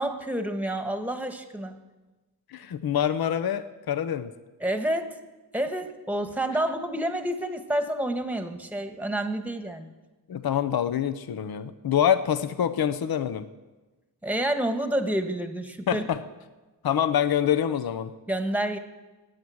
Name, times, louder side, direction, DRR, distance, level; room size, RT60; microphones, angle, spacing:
voice 1, 0.0-1.8 4.6-5.1 5.5-9.9 14.2-16.1 18.3-18.8, right 1 dB, 5° right, 7 dB, 1.3 m, -29 dB
voice 2, 2.5-4.3 10.3-13.5 15.9-16.2 16.8-18.1, left 9 dB, 60° left, 11 dB, 0.8 m, -26 dB
21.0 x 9.7 x 6.4 m, 1.2 s
wide cardioid pair, 125°, 42 cm